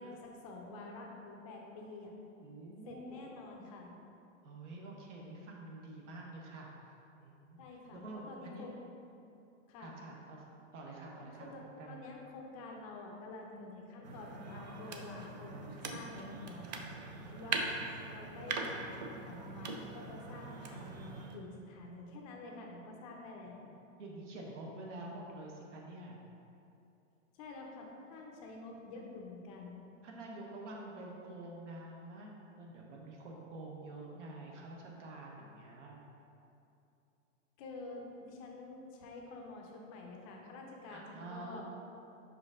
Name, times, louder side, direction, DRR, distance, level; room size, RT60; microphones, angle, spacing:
voice 1, 0.0-2.1 2.9-4.0 7.6-8.8 9.7-9.9 11.4-23.6 27.3-29.8 37.6-41.6, left 2 dB, 25° left, 0 dB, 0.6 m, -48 dB
voice 2, 2.4-3.3 4.4-6.7 7.2-7.7 7.9-8.7 9.8-10.5 10.7-12.0 16.7-17.4 24.0-26.2 30.0-36.0 40.9-41.6, right 2 dB, 65° right, -2 dB, 1.2 m, -48 dB
sound 1, 14.0-21.4, right 4 dB, 35° right, 0.4 m, -42 dB
5.4 x 5.0 x 3.6 m, 2.7 s
hypercardioid pair, 155°, 39 cm